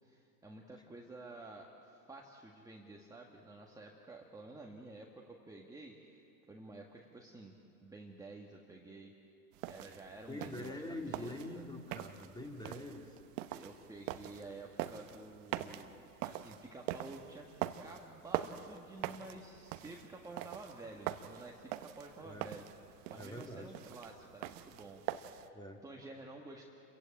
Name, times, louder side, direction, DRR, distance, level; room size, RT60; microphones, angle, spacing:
voice 1, 0.0-6.2 6.5-7.6 7.8-9.1 9.7-11.6 13.5-15.9 16.2-17.4 17.8-22.6 23.1-25.0 25.3-26.7, right 2 dB, 5° right, -1 dB, 1.7 m, -51 dB
sound 1, 9.5-25.5, right 13 dB, 50° right, 1.1 m, -44 dB
voice 2, 10.3-13.2 22.2-22.5 23.1-23.7 25.5-25.8, left 1 dB, 10° left, 2 dB, 2.8 m, -45 dB
29.0 x 15.5 x 8.8 m, 2.7 s
hypercardioid pair, 115°, 48 cm